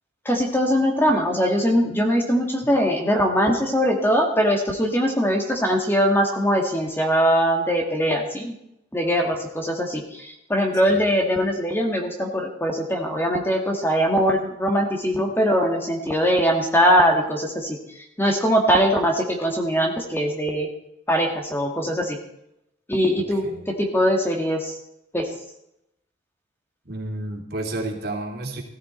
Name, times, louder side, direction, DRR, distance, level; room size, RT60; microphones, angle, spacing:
voice 1, 0.3-8.5 8.9-17.8 18.2-20.7 21.1-22.2 22.9-24.8 25.1-25.3, equal, 10° left, 2 dB, 2.0 m, -21 dB
voice 2, 26.8-28.6, right 2 dB, 55° right, 2 dB, 2.9 m, -31 dB
17.5 x 14.5 x 4.5 m, 0.81 s
head